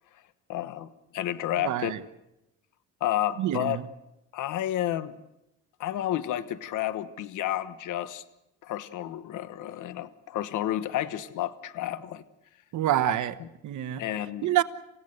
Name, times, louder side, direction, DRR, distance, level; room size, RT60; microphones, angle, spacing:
voice 1, 0.5-1.9 3.0-3.8 4.3-5.1 5.8-8.2 8.6-12.2 13.4-13.5 14.0-14.5, left 12 dB, 80° left, 1.3 m, -31 dB
voice 2, 1.6-2.0 3.4-3.8 12.7-13.3 13.6-14.0 14.4-14.6, right 12 dB, 75° right, 1.3 m, -26 dB
28.0 x 16.5 x 8.1 m
cardioid pair, 90°, 30 cm